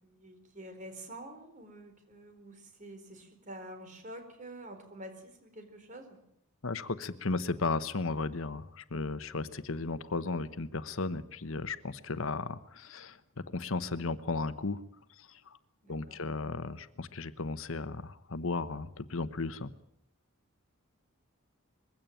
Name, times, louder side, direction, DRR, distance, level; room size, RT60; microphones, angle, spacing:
voice 1, 0.0-6.2 15.8-16.2, right 1 dB, 35° right, 6 dB, 4.4 m, -48 dB
voice 2, 6.6-14.8 15.2-15.6 15.9-19.7, left 3 dB, 65° left, 13 dB, 1.0 m, -35 dB
22.0 x 16.5 x 9.1 m, 0.73 s
head